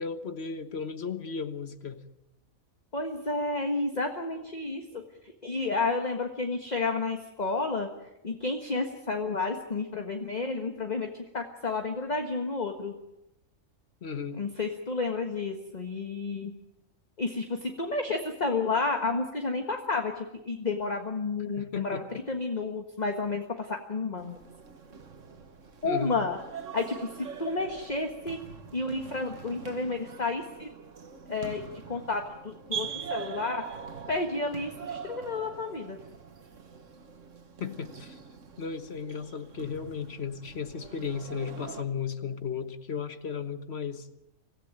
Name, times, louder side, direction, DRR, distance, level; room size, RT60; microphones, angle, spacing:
voice 1, 0.0-2.0 14.0-14.4 21.6-22.2 25.8-26.2 37.6-38.2 38.6-44.1, left 6 dB, 50° left, 10 dB, 1.5 m, -35 dB
voice 2, 2.9-7.9 8.2-13.0 14.3-16.5 17.2-24.4 25.8-26.4 26.7-28.4 28.7-30.7 31.3-33.7 34.1-36.0, left 3 dB, 30° left, 4 dB, 1.6 m, -31 dB
sound 1, 24.2-41.8, right 7 dB, 65° right, 1.9 m, -43 dB
25.0 x 15.5 x 9.0 m, 0.89 s
omnidirectional pair, 1.4 m